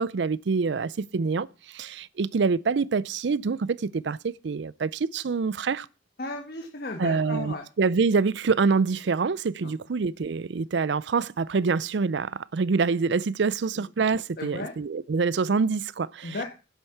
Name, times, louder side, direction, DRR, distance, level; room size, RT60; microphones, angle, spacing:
voice 1, 0.0-5.9 7.0-16.4, right 4 dB, 65° right, 0.5 m, -26 dB
voice 2, 6.2-7.6 9.6-9.7 14.4-14.7 16.2-16.4, left 2 dB, 55° left, 1.5 m, -34 dB
10.5 x 7.7 x 5.8 m
head